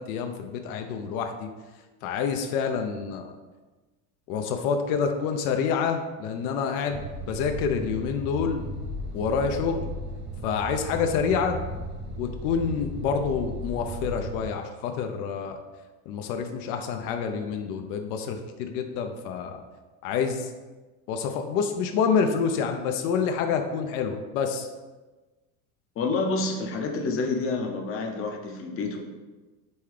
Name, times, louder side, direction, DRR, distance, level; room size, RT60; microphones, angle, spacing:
voice 1, 0.0-1.5 2.0-3.3 4.3-8.6 9.1-9.9 10.4-11.6 12.2-15.6 16.1-19.6 20.0-20.5 21.1-24.7, left 6 dB, 70° left, 5 dB, 0.6 m, -27 dB
sound 1, 6.9-14.5, equal, 30° right, 0.4 m, -36 dB
voice 2, 26.0-29.0, left 3 dB, 30° left, 2 dB, 0.6 m, -28 dB
5.4 x 2.3 x 3.2 m, 1.2 s
supercardioid pair, 110°, 45 cm